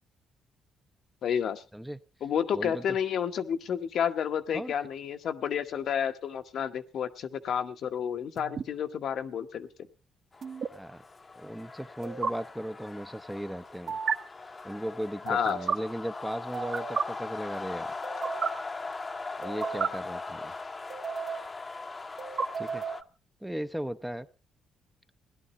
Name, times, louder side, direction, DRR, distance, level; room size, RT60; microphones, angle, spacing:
voice 1, 1.2-1.6 2.2-9.7 15.3-15.6, left 8 dB, 65° left, 8 dB, 1.0 m, -30 dB
voice 2, 2.5-3.0 4.5-4.7 10.7-11.0 11.3-14.0 14.6-17.9 19.4-20.5 22.6-22.8 23.4-24.3, equal, 5° right, 10 dB, 0.7 m, -37 dB
sound 1, 8.4-8.6 10.4-10.7 12.0-12.3 13.9-14.2 15.3-15.8 16.5-17.0 18.0-18.5 19.4-19.9 20.9-21.5 22.2-23.0, right 6 dB, 55° right, 1.2 m, -32 dB
sound 2, 10.3-23.0, left 3 dB, 30° left, 0.9 m, -40 dB
17.0 x 11.5 x 4.1 m, 0.34 s
cardioid pair, 90°, 0 cm